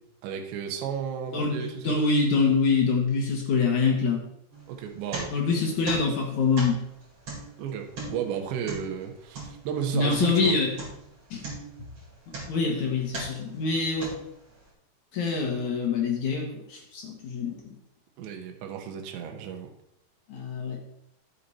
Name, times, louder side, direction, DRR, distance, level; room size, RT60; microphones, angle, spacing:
voice 1, 0.2-2.1 4.7-5.7 7.6-10.5 18.2-19.7, right 8 dB, 75° right, 3 dB, 3.3 m, -33 dB
voice 2, 1.3-4.2 5.3-6.8 9.9-10.7 11.3-11.4 12.5-14.1 15.1-17.5 20.3-20.8, left 4 dB, 60° left, 0 dB, 2.2 m, -25 dB
sound 1, 4.5-5.6 5.9-10.5 10.8-11.1 11.4-12.7 13.1-13.5 14.0-14.6, right 2 dB, 35° right, 5.2 m, -38 dB
11.0 x 8.4 x 4.2 m, 0.75 s
omnidirectional pair, 5.3 m